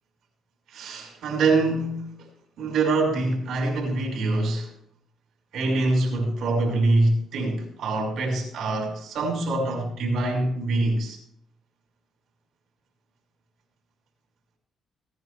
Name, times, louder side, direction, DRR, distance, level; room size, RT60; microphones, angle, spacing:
voice 1, 0.7-2.1 2.6-4.7 5.5-11.2, right 2 dB, 70° right, 5.5 m, -24 dB
18.0 x 10.5 x 3.4 m
cardioid pair, 90°, 0 cm